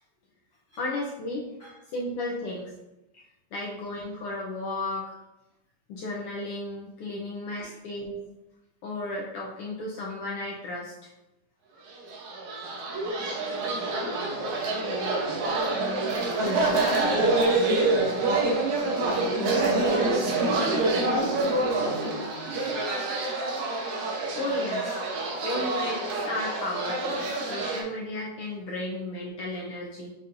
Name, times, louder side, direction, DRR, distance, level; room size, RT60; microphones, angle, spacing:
voice 1, 0.8-1.4 1.9-2.7 3.5-5.1 5.9-8.2 8.8-11.1 24.3-24.9 25.4-26.0 26.2-30.1, left 2 dB, 85° left, -4 dB, 1.3 m, -33 dB
sound 1, 12.0-27.8, right 2 dB, 70° right, 2.3 m, -26 dB
voice 2, 13.5-14.4 15.1-18.1 18.7-20.8 21.1-22.7, right 1 dB, 20° left, -7 dB, 1.2 m, -40 dB
7.0 x 5.1 x 2.6 m, 0.93 s
omnidirectional pair, 3.7 m